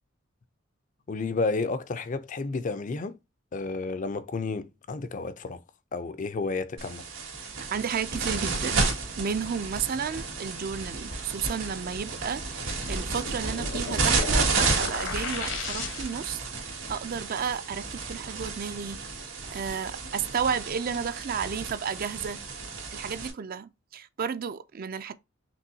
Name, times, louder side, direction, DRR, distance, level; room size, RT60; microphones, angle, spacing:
voice 1, 1.1-3.2 3.5-5.6 5.9-7.0, left 3 dB, 40° left, 0.4 m, -31 dB
sound 1, 6.8-23.3, right 3 dB, 85° right, 2.1 m, -31 dB
voice 2, 7.7-8.8 9.2-12.4 12.9-16.4 16.9-19.0 19.5-22.4 22.9-25.1, right 6 dB, 45° right, 0.4 m, -32 dB
sound 2, 12.8-16.4, left 4 dB, 70° left, 1.0 m, -36 dB
5.3 x 3.1 x 2.7 m
head